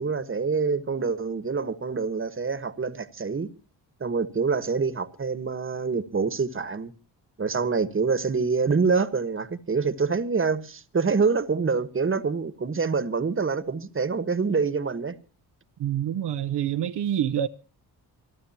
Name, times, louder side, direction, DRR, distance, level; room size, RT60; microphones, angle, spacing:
voice 1, 0.0-3.5 4.0-6.9 7.4-15.1, right 5 dB, 30° right, 1.4 m, -26 dB
voice 2, 15.8-17.5, right 10 dB, 75° right, 0.9 m, -26 dB
28.0 x 12.0 x 2.9 m
cardioid pair, 75°, 41 cm